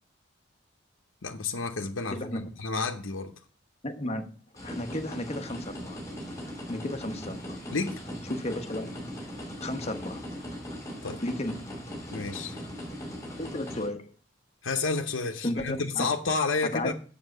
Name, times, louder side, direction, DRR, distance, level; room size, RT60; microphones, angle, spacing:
voice 1, 1.2-3.3 7.7-8.0 11.0-11.2 12.1-12.6 14.6-16.9, left 4 dB, 85° left, 0.9 m, -30 dB
voice 2, 2.1-2.5 3.8-4.3 4.6-6.0 6.7-7.6 8.3-8.9 9.6-10.2 11.2-11.7 13.4-14.1 15.4-16.1 16.6-16.9, left 1 dB, 35° left, 1.0 m, -33 dB
sound 1, 4.5-13.9, equal, 15° left, 3.0 m, -39 dB
7.5 x 6.9 x 6.5 m
head